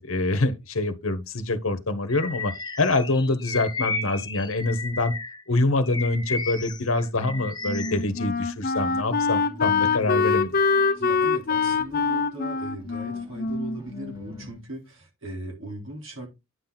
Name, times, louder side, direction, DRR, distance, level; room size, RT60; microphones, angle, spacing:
voice 1, 0.0-2.5 2.8-5.1 5.5-10.5, left 2 dB, 65° left, 1.1 m, -25 dB
Bird vocalization bird call bird song, 2.1-5.4 5.8-8.1, left 4 dB, 20° left, 0.9 m, -33 dB
Wind instrument woodwind instrument, 7.2-14.5, left 4 dB, 40° left, 0.7 m, -25 dB
sound 1, 8.8-14.5, right 1 dB, 15° right, 1.7 m, -45 dB
voice 2, 10.9-16.3, right 1 dB, 60° right, 3.7 m, -39 dB
9.7 x 5.9 x 4.0 m
head